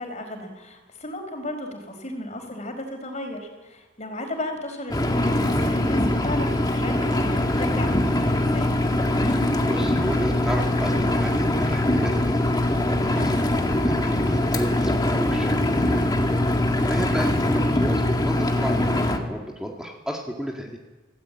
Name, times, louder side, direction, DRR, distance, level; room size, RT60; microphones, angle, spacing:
voice 1, 0.0-8.8 13.1-13.4, left 1 dB, 40° left, 5 dB, 4.8 m, -35 dB
Engine, 4.9-19.2, left 1 dB, 20° left, 2.0 m, -22 dB
sound 1, 7.1-15.0, equal, 45° right, 5.2 m, -43 dB
voice 2, 9.2-12.5 12.9-13.6 13.8-16.1 16.8-20.8, equal, 5° right, 0 dB, 2.0 m, -32 dB
25.5 x 17.5 x 8.9 m, 1.3 s
head